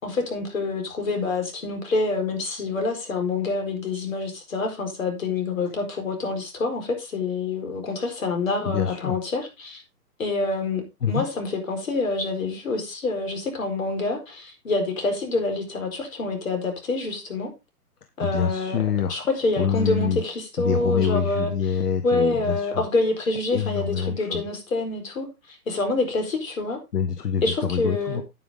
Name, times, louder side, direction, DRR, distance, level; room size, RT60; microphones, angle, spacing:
voice 1, 0.0-9.8 10.2-17.5 18.2-18.8 19.1-21.5 22.0-26.8 27.4-28.2, left 3 dB, 60° left, 4 dB, 4.6 m, -27 dB
voice 2, 8.6-9.2 11.0-11.3 18.2-19.2 19.6-20.2 20.6-22.8 23.5-24.4 26.9-28.2, left 7 dB, 80° left, 9 dB, 1.5 m, -26 dB
9.4 x 9.3 x 3.8 m, 0.24 s
hypercardioid pair, 175°, 46 cm